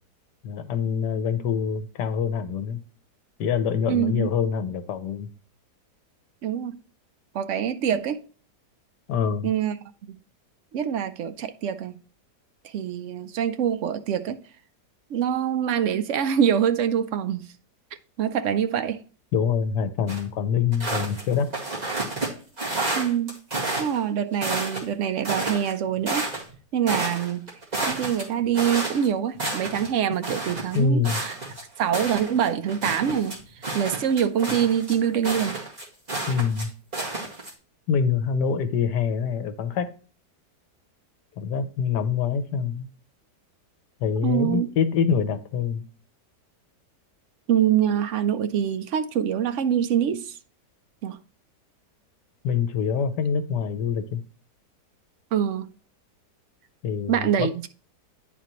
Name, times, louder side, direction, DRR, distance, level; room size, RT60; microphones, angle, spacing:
voice 1, 0.4-2.8 3.4-5.3 9.1-9.5 19.3-21.5 30.7-31.2 36.3-36.7 37.9-39.9 41.4-42.9 44.0-45.8 52.4-54.2 56.8-57.5, left 6 dB, 80° left, 1.4 m, -25 dB
voice 2, 3.9-4.3 6.4-6.8 7.3-8.2 9.4-9.8 10.0-10.2 10.7-12.0 12.6-14.4 15.1-17.5 18.2-19.0 23.0-23.4 23.8-26.3 26.7-27.5 27.8-31.3 31.8-35.6 44.2-44.7 47.5-50.4 51.0-51.2 55.3-55.7 57.1-57.7, right 9 dB, 70° right, 0.7 m, -25 dB
sound 1, 20.1-20.2 20.7-22.3 22.6-24.0 24.3-24.9 25.2-26.5 26.9-29.1 29.3-29.9 30.2-36.6 36.9-37.5, right 2 dB, 25° right, 2.1 m, -30 dB
10.0 x 4.1 x 3.0 m
omnidirectional pair, 1.8 m